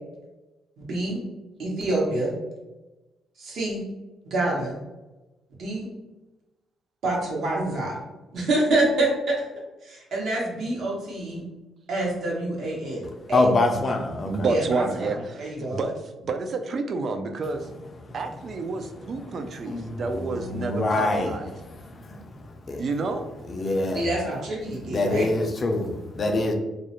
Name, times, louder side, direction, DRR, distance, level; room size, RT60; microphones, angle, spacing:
voice 1, 0.9-1.2 1.6-2.4 3.4-3.8 4.2-4.8 5.6-5.9 7.0-8.0 8.3-9.4 9.8-11.5 11.9-13.4 14.3-15.1 15.4-15.8 23.9-25.2, right 2 dB, 70° right, -3 dB, 0.9 m, -27 dB
voice 2, 13.3-14.5 19.7-19.9 20.2-21.3 22.7-22.8 23.5-24.1 24.9-25.9 26.2-26.5, left 2 dB, 40° left, 3 dB, 0.4 m, -24 dB
voice 3, 14.2-15.9 16.2-17.7 18.1-21.5 22.8-23.2, right 3 dB, 55° right, 6 dB, 0.3 m, -29 dB
2.3 x 2.0 x 2.8 m, 1.1 s
cardioid pair, 90°, 0 cm